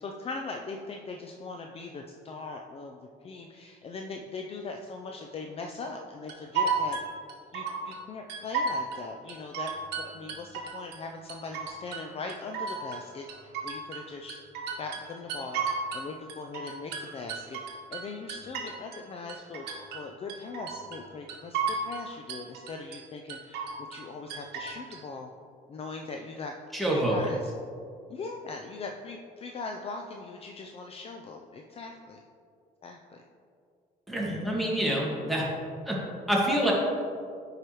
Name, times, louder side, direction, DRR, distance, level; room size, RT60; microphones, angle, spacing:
voice 1, 0.0-7.0 7.5-14.4 14.8-15.6 15.9-17.6 17.9-25.3 25.7-26.5 26.9-27.5 28.1-32.2 32.8-33.2, left 3 dB, 35° left, 3 dB, 0.4 m, -40 dB
sound 1, 6.3-8.0 8.3-9.0 9.3-11.0 11.3-12.0 12.3-16.0 16.3-19.0 19.3-20.0 20.3-21.0 21.3-22.0 22.3-23.0 23.3-24.0 24.3-25.0, right 5 dB, 80° right, 1.1 m, -33 dB
voice 2, 26.7-27.2 34.1-35.5 35.9-36.0 36.3-36.7, right 1 dB, ahead, -4 dB, 1.7 m, -26 dB
9.6 x 4.8 x 3.0 m, 2.3 s
cardioid pair, 110°, 17 cm